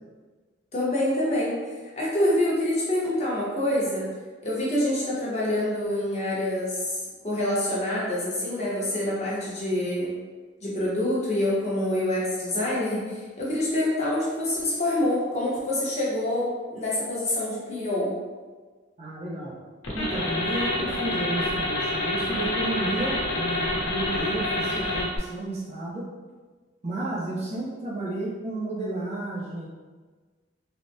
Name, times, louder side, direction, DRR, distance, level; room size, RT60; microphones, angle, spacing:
voice 1, 0.7-1.6 2.0-4.1 4.4-10.1 10.6-18.1 24.7-24.9, left 1 dB, 35° left, -6 dB, 0.7 m, -26 dB
voice 2, 19.0-19.6 19.9-26.1 26.8-29.7, right 2 dB, 35° right, -6 dB, 0.5 m, -32 dB
sound 1, 19.8-25.2, left 1 dB, 90° left, 0.7 m, -27 dB
3.3 x 2.0 x 2.6 m, 1.4 s
head